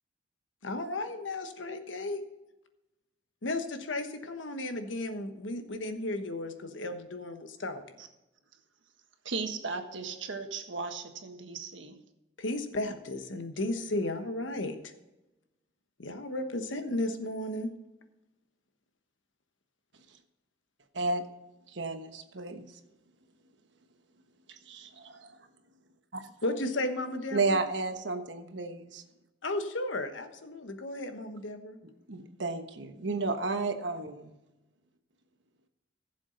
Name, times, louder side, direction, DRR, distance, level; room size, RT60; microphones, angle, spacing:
voice 1, 0.6-2.2 3.4-7.8 12.4-14.9 16.0-17.7 26.4-27.6 29.4-31.8, left 2 dB, 85° left, 7 dB, 1.2 m, -34 dB
voice 2, 9.2-12.0, right 4 dB, 80° right, 6 dB, 1.5 m, -37 dB
voice 3, 20.9-21.3 21.7-22.7 24.5-25.3 26.1-26.3 27.3-29.0 32.1-34.3, right 3 dB, 65° right, 7 dB, 1.2 m, -32 dB
16.0 x 7.2 x 4.0 m, 1.0 s
head